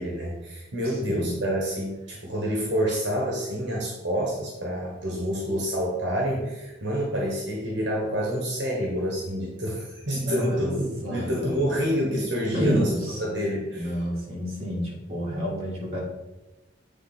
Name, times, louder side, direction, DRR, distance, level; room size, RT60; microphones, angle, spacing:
voice 1, 0.0-14.0, equal, 60° right, -2 dB, 1.4 m, -28 dB
voice 2, 10.1-10.7 11.0-11.9 12.5-13.2 13.7-16.0, equal, 30° right, -6 dB, 2.4 m, -30 dB
8.1 x 3.5 x 5.8 m, 1.1 s
head